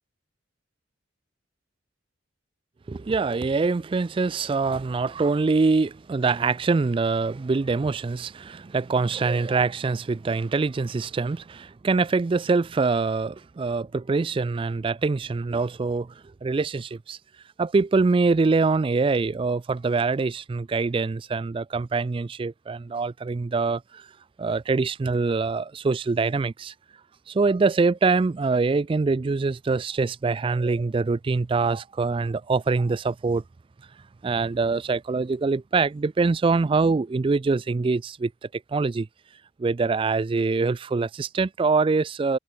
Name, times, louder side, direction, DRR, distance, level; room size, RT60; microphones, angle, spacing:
voice 1, 2.9-16.1 16.4-17.2 17.6-24.1 24.4-26.7 27.3-33.4 34.2-38.3 38.7-39.1 39.6-42.4, right 4 dB, 25° right, 0.3 m, -24 dB
head